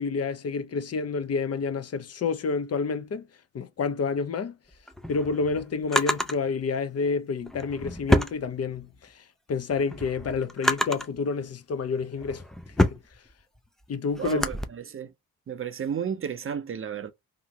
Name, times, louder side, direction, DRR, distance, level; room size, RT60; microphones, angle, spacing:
voice 1, 0.0-3.3 3.5-4.6 5.1-12.4 12.8-13.0 13.9-14.5, left 4 dB, 35° left, 0.7 m, -29 dB
Drawer open or close, 4.7-6.4 7.4-9.0 9.5-11.2 11.8-14.7, left 1 dB, ahead, 0.4 m, -28 dB
voice 2, 14.1-15.1 15.5-17.1, right 7 dB, 30° right, 0.7 m, -33 dB
2.9 x 2.5 x 2.9 m
hypercardioid pair, 40°, 43 cm